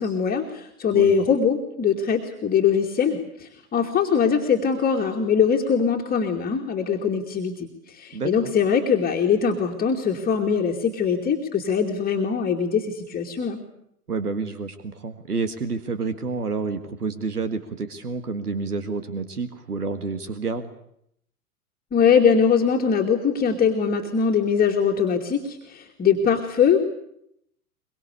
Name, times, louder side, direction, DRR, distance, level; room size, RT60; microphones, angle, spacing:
voice 1, 0.0-13.6 21.9-26.8, left 6 dB, 20° left, 2 dB, 2.3 m, -22 dB
voice 2, 8.1-8.5 14.1-20.7, right 4 dB, 80° right, 11 dB, 1.9 m, -29 dB
23.5 x 23.0 x 8.4 m, 0.72 s
figure-of-eight pair, 95°, 45 cm